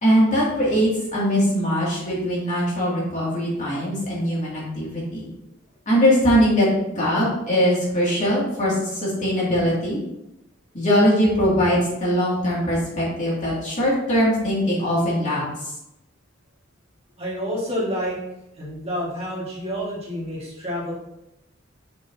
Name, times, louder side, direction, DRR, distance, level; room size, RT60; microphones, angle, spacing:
voice 1, 0.0-5.3 5.9-10.0 10.7-15.7, equal, 40° left, -6 dB, 2.5 m, -21 dB
voice 2, 17.2-18.2 18.6-20.9, equal, 30° right, -5 dB, 1.8 m, -28 dB
6.2 x 6.2 x 2.8 m, 0.88 s
head